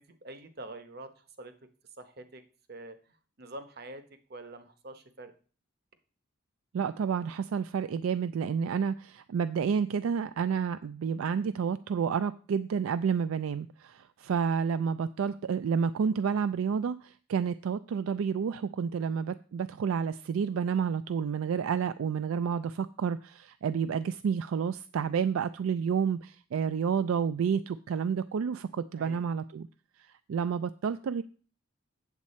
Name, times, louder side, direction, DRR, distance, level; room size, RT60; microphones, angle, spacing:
voice 1, 0.1-1.5 2.0-2.4 2.7-3.0 3.4-4.0 4.3-5.3 28.9-29.3, right 2 dB, 45° right, 10 dB, 0.8 m, -45 dB
voice 2, 6.7-29.7 30.0-31.2, right 6 dB, 70° right, 13 dB, 0.3 m, -30 dB
8.2 x 7.2 x 4.2 m, 0.40 s
head